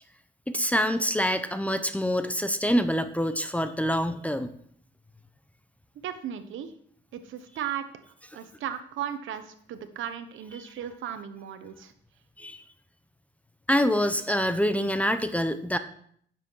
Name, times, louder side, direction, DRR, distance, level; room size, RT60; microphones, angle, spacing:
voice 1, 0.5-4.5 12.4-12.6 13.7-15.8, equal, 5° left, 10 dB, 0.8 m, -26 dB
voice 2, 6.0-6.7 7.1-7.9 8.3-11.9, right 9 dB, 80° right, 9 dB, 1.2 m, -36 dB
9.5 x 7.4 x 4.7 m, 0.62 s
cardioid pair, 90°, 20 cm